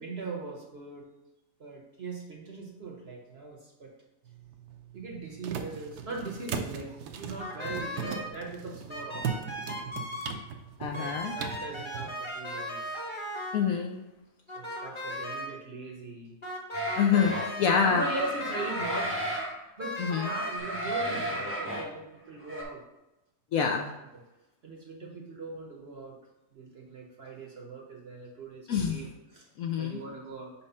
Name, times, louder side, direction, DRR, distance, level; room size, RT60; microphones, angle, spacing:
voice 1, 0.0-1.1 1.6-3.9 4.9-9.4 10.9-13.1 14.5-16.3 17.8-19.2 19.8-22.8 23.8-23.9 24.6-26.2 26.5-29.4 29.8-30.5, right 3 dB, 45° right, 0 dB, 0.9 m, -40 dB
sound 1, 4.2-12.1, right 7 dB, 70° right, 1.1 m, -39 dB
sound 2, 7.4-8.3 8.9-10.4 10.9-13.6 14.5-15.5 16.4-17.7 18.2-19.4 19.8-20.6, equal, 20° left, 1.1 m, -37 dB
voice 2, 10.8-11.3 13.5-14.0 17.0-18.0 20.0-20.3 23.5-23.9 28.7-29.1 29.6-30.0, left 7 dB, 70° left, 2 dB, 0.9 m, -26 dB
sound 3, 16.7-17.5 17.7-19.5 20.0-21.9 22.4-22.6, equal, 10° right, 0.9 m, -34 dB
4.7 x 4.3 x 5.4 m, 0.97 s
omnidirectional pair, 1.8 m